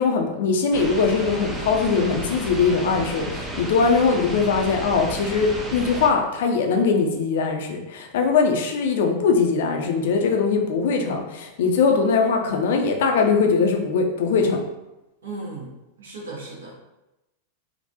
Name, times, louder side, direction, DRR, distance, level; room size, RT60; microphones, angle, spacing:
voice 1, 0.0-14.6, left 5 dB, 55° left, 3 dB, 0.5 m, -21 dB
sound 1, 0.7-6.1, equal, 10° right, 0.5 m, -32 dB
voice 2, 15.2-16.7, right 2 dB, 65° right, -3 dB, 1.0 m, -36 dB
3.6 x 2.3 x 2.7 m, 0.96 s
figure-of-eight pair, 90°, 0 cm